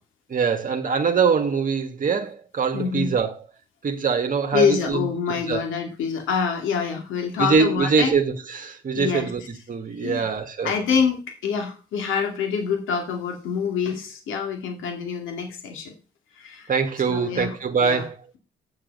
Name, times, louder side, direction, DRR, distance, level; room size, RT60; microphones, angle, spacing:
voice 1, 0.3-3.3 3.8-5.6 7.4-9.4 9.7-10.7 16.7-18.2, right 5 dB, 40° right, 1.5 m, -23 dB
voice 2, 2.7-3.1 4.5-8.1 8.9-9.3 10.0-10.2 10.6-15.9 16.4-16.7 17.1-17.6 17.8-18.1, left 6 dB, 85° left, 2.3 m, -26 dB
8.3 x 7.6 x 5.3 m
cardioid pair, 90°, 20 cm